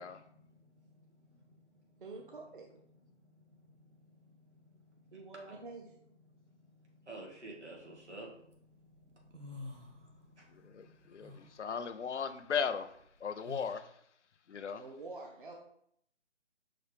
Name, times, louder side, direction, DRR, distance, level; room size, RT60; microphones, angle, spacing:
voice 1, 0.0-2.3 3.2-5.6 6.3-6.5 6.7-11.6, right 2 dB, 70° right, -1 dB, 1.7 m, -55 dB
voice 2, 2.0-2.7 5.1-5.8 14.7-15.5, right 3 dB, 45° right, 1 dB, 0.6 m, -47 dB
sound 1, 7.7-8.5 8.9-10.5 10.8-13.8, left 2 dB, 85° right, 1.0 m, -49 dB
voice 3, 10.6-12.9 13.2-13.9 14.5-14.8, left 6 dB, 75° left, 11 dB, 0.5 m, -37 dB
5.8 x 2.5 x 3.3 m, 0.70 s
figure-of-eight pair, 150°, 36 cm